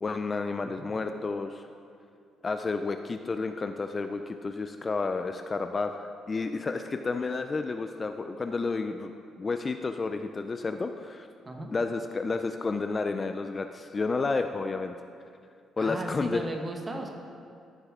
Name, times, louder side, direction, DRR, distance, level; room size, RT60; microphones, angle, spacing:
voice 1, 0.0-1.7 2.4-11.3 11.7-15.0 15.8-16.4, left 4 dB, 25° left, 7 dB, 0.3 m, -31 dB
voice 2, 15.8-17.1, right 1 dB, 20° right, 2 dB, 1.0 m, -36 dB
13.0 x 6.7 x 3.6 m, 2.4 s
cardioid pair, 125°, 0 cm